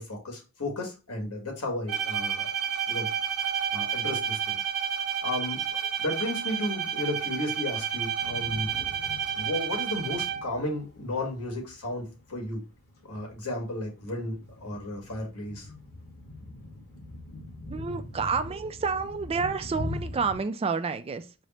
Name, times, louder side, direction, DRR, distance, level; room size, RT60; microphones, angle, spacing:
voice 1, 0.0-2.5 2.9-3.1 3.7-4.6 5.2-8.7 9.3-12.7 13.0-15.7, left 1 dB, 80° left, 1.6 m, -33 dB
Bowed string instrument, 1.9-10.6, right 8 dB, 85° right, 1.3 m, -30 dB
sound 1, 7.9-20.4, left 2 dB, 45° left, 1.3 m, -43 dB
voice 2, 17.7-21.3, right 5 dB, 25° right, 0.3 m, -29 dB
4.8 x 2.0 x 4.1 m
head